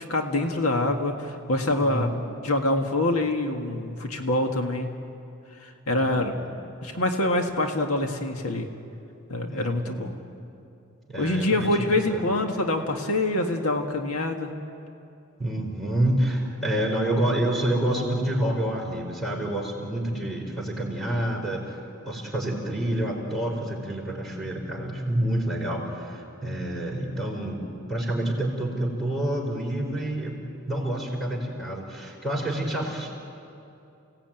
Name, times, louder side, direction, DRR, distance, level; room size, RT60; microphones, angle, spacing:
voice 1, 0.0-2.1 2.4-4.9 5.6-6.3 6.8-8.7 9.3-10.1 11.2-14.5, left 2 dB, 75° left, 4 dB, 1.8 m, -25 dB
voice 2, 1.8-2.2 6.0-6.5 9.5-10.1 11.1-12.2 15.4-21.8 22.0-27.6 27.9-30.3 30.7-33.1, right 1 dB, ahead, -1 dB, 4.8 m, -28 dB
29.5 x 17.5 x 9.2 m, 2.7 s
head